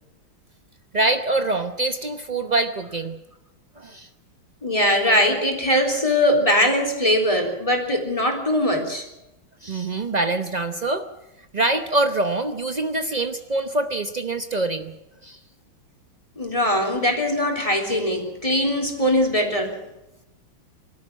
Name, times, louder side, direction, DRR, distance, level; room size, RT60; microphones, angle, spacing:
voice 1, 0.9-3.2 3.8-4.1 9.6-11.0 11.5-14.9 15.2-15.4, right 2 dB, 85° right, 8 dB, 0.3 m, -24 dB
voice 2, 4.6-9.1 16.4-19.8, left 1 dB, 15° left, 2 dB, 3.7 m, -21 dB
24.5 x 13.0 x 8.8 m, 0.93 s
omnidirectional pair, 2.3 m